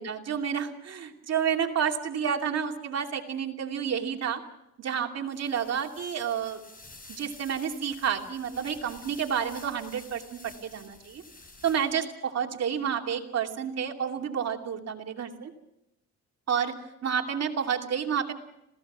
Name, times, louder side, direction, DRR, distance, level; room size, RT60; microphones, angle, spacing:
voice 1, 0.0-4.4 4.8-6.6 7.1-11.2 11.6-15.5 16.5-16.7 17.0-18.3, right 7 dB, 55° right, 3 dB, 2.7 m, -30 dB
sound 1, 5.3-12.1, left 2 dB, 30° left, 5.3 m, -51 dB
27.0 x 17.0 x 6.2 m, 0.86 s
cardioid pair, 90°, 30 cm